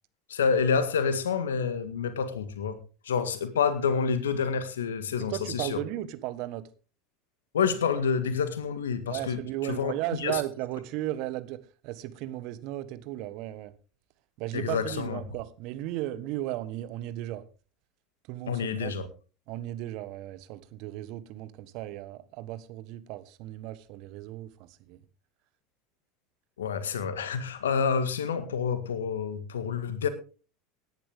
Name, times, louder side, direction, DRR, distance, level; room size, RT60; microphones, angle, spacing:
voice 1, 0.3-2.8 3.1-5.8 7.5-9.4 9.7-9.9 10.2-10.4 14.5-15.2 18.5-19.1 26.6-30.1, left 6 dB, 80° left, 1.8 m, -28 dB
voice 2, 5.3-6.7 9.1-13.7 14.4-17.4 18.3-18.9 19.5-25.0, right 15 dB, 60° right, 1.4 m, -35 dB
17.0 x 11.0 x 3.7 m
hypercardioid pair, 75°, 0 cm